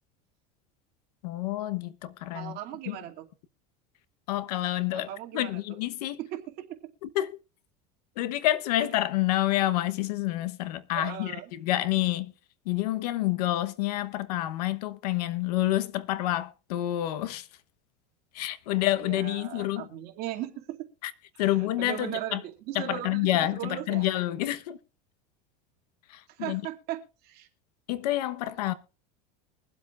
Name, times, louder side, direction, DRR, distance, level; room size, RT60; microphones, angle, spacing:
voice 1, 1.2-2.6 2.9-3.0 4.3-6.2 7.0-7.4 8.2-12.3 12.6-17.5 18.3-19.9 21.0-21.1 21.4-22.4 22.7-24.8 26.1-26.6 27.9-28.7, left 15 dB, 85° left, 1.1 m, -28 dB
voice 2, 2.3-3.3 4.9-5.6 6.2-6.7 10.9-11.5 19.0-20.8 21.3-21.5 21.8-24.1 26.4-27.5, right 13 dB, 50° right, 2.5 m, -37 dB
23.0 x 7.9 x 2.5 m
supercardioid pair, 135°, 20 cm